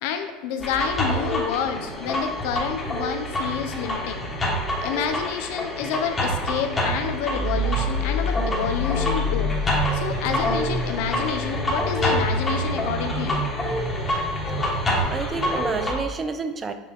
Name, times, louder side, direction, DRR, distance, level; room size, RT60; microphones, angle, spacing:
voice 1, 0.0-4.2 4.8-9.5 9.9-13.4, left 7 dB, 75° left, 7 dB, 0.5 m, -29 dB
sound 1, 0.6-15.9, left 1 dB, 20° left, 1.1 m, -26 dB
voice 2, 15.0-16.7, right 4 dB, 25° right, 9 dB, 0.4 m, -29 dB
6.6 x 2.4 x 3.4 m, 1.2 s
supercardioid pair, 110°, 0 cm